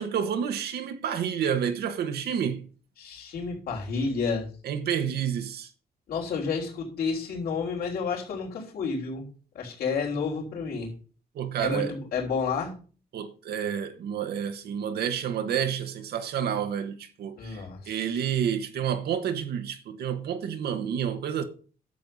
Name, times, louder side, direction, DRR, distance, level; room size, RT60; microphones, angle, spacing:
voice 1, 0.0-2.6 4.6-5.7 11.3-11.9 13.1-21.4, right 8 dB, 80° right, 1.3 m, -29 dB
voice 2, 3.0-4.5 6.1-9.3 9.5-10.9 11.6-12.7 17.4-18.1, left 5 dB, 70° left, 3.7 m, -30 dB
11.5 x 7.8 x 5.4 m
wide cardioid pair, 175°, 16 cm